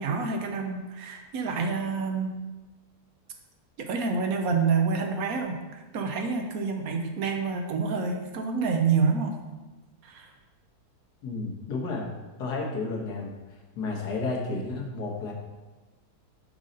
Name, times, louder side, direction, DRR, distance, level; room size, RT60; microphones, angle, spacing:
voice 1, 0.0-2.4 3.8-9.4 10.0-10.3, right 5 dB, 70° right, 4 dB, 1.1 m, -28 dB
voice 2, 11.2-12.1 12.4-13.3 13.8-15.3, left 3 dB, 80° left, -1 dB, 1.7 m, -31 dB
6.3 x 5.4 x 3.8 m, 1.2 s
omnidirectional pair, 1.7 m